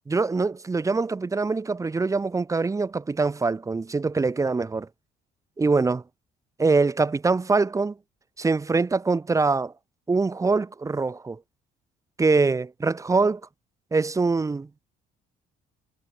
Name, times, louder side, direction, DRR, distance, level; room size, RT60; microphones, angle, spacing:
voice 1, 0.1-4.9 5.6-6.0 6.6-7.9 8.4-9.7 10.1-11.4 12.2-13.4 13.9-14.7, right 4 dB, 20° right, 0.9 m, -23 dB
cardioid pair, 110°, 17 cm